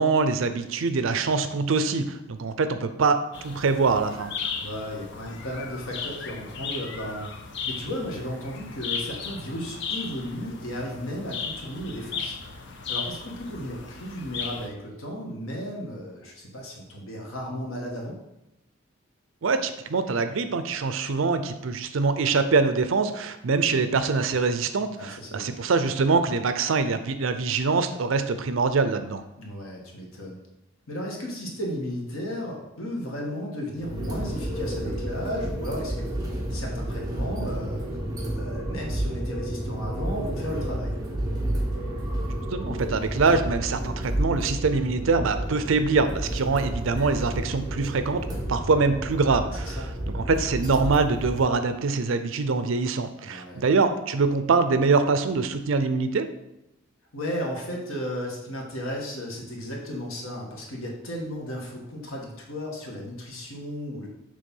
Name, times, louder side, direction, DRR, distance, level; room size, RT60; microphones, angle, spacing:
voice 1, 0.0-3.2 3.4-4.3 19.4-29.2 42.5-48.2 48.5-49.9 50.1-56.2, right 4 dB, 75° right, 10 dB, 0.5 m, -24 dB
sound 1, 3.3-14.7, left 5 dB, 55° left, 0.6 m, -36 dB
voice 2, 4.6-7.3 7.7-18.2 25.0-25.5 29.4-30.4 30.9-36.1 36.5-37.8 38.2-41.0 46.3-46.5 49.6-49.9 53.2-53.6 57.1-64.1, equal, 90° left, -1 dB, 1.6 m, -34 dB
sound 2, 33.8-51.4, right 1 dB, 20° right, 1.2 m, -31 dB
6.7 x 3.4 x 5.4 m, 0.89 s
head